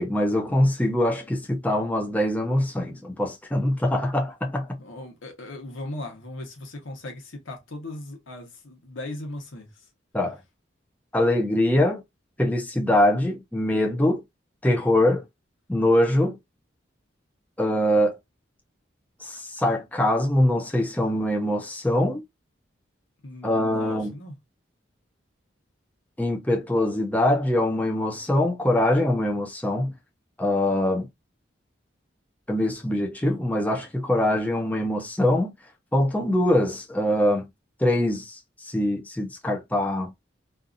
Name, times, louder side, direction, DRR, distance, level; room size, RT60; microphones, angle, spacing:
voice 1, 0.0-4.8 10.1-10.4 11.1-12.0 12.4-14.2 14.6-15.2 15.7-16.4 17.6-18.2 19.2-22.2 23.4-24.1 26.2-29.9 30.4-31.1 32.5-35.5 35.9-37.5 37.8-40.1, left 1 dB, 10° left, 0.5 m, -23 dB
voice 2, 4.8-9.8 23.2-24.4, left 1 dB, 85° left, 1.0 m, -38 dB
2.7 x 2.5 x 2.4 m
head